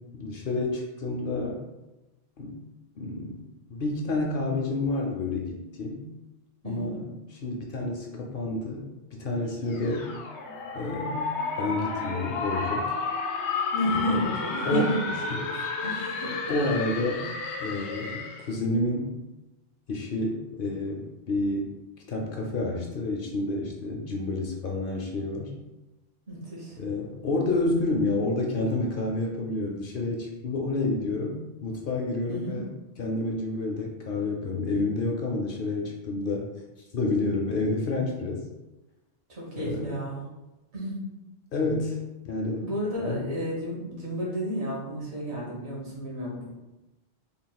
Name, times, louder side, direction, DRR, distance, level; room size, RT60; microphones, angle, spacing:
voice 1, 0.0-1.6 2.4-2.6 3.0-6.1 6.6-8.9 9.2-10.2 10.7-12.9 14.1-14.3 14.6-14.9 15.3-15.4 16.5-17.3 17.6-19.2 19.9-21.7 22.1-25.5 26.8-32.7 33.0-36.5 36.9-38.4 39.6-40.0 41.5-42.7 43.0-43.3, left 2 dB, 60° left, 1 dB, 0.6 m, -29 dB
voice 2, 6.6-7.0 13.7-16.4 26.3-26.8 32.3-32.6 39.3-40.3 40.7-41.1 42.6-46.5, equal, 70° right, -4 dB, 1.5 m, -32 dB
sound 1, 9.7-18.5, left 4 dB, 85° left, 0.9 m, -32 dB
3.5 x 2.3 x 3.9 m, 1.0 s
omnidirectional pair, 1.2 m